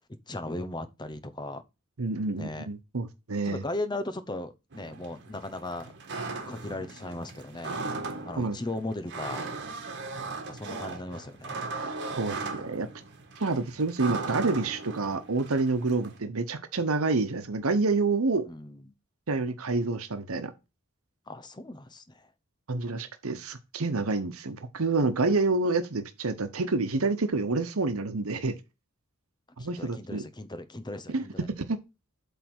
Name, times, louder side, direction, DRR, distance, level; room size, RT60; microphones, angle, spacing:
voice 1, 0.3-1.6 2.4-2.7 3.4-5.9 6.4-7.8 8.2-9.5 10.5-11.8 18.5-18.9 21.3-22.3 29.6-31.5, left 2 dB, 20° left, 0.8 m, -37 dB
voice 2, 2.0-3.6 8.4-8.6 12.2-12.9 13.4-18.5 19.3-20.5 22.7-28.6 29.6-30.2 31.1-31.8, right 3 dB, 90° right, 1.0 m, -28 dB
sound 1, 4.7-16.2, right 3 dB, 55° right, 1.6 m, -38 dB
8.3 x 3.5 x 6.2 m
head